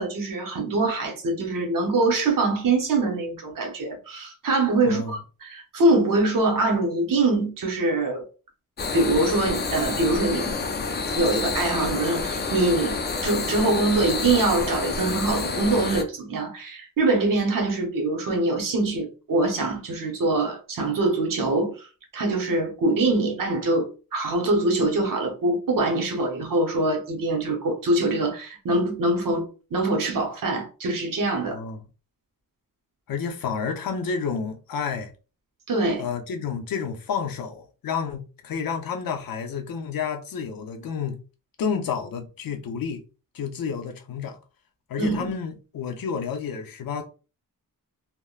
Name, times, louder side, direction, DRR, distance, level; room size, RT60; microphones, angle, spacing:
voice 1, 0.0-8.2 8.9-10.5 11.2-21.8 22.1-31.6 35.7-36.0 45.0-45.3, right 2 dB, 70° right, 0.9 m, -24 dB
voice 2, 4.8-5.1 31.5-31.8 33.1-35.1 36.0-41.2 41.6-43.0 43.3-44.4 44.9-47.0, left 6 dB, 80° left, 0.6 m, -30 dB
sound 1, 8.8-16.0, left 4 dB, 30° left, 0.4 m, -28 dB
3.4 x 2.1 x 2.3 m
wide cardioid pair, 125°, 34 cm